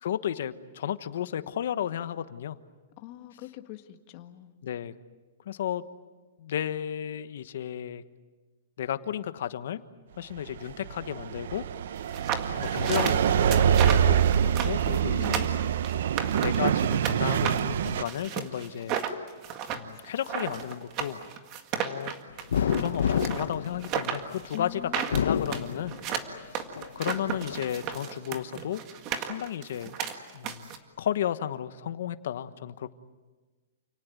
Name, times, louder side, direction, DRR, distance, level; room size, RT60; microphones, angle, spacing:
voice 1, 0.0-2.6 4.6-4.9 5.4-5.8 6.4-8.0 8.8-9.8 10.2-11.6 12.6-15.5 16.4-19.0 19.7-21.2 21.8-22.1 22.8-24.8 25.1-26.0 26.3-26.6 26.9-28.8 29.2-29.9 30.3-30.7 31.0-32.9, left 10 dB, 60° left, 12 dB, 1.3 m, -33 dB
voice 2, 3.0-4.6 15.1-15.7 24.5-25.6, left 15 dB, 35° left, 7 dB, 1.7 m, -43 dB
sound 1, 10.5-18.0, right 9 dB, 60° right, 0.8 m, -25 dB
sound 2, 12.1-17.2 17.5-30.8, right 8 dB, 25° right, 1.8 m, -34 dB
sound 3, 22.5-24.4 25.0-26.3 26.8-27.6, left 8 dB, 80° left, 1.2 m, -29 dB
29.0 x 18.5 x 9.4 m, 1.3 s
hypercardioid pair, 170°, 0 cm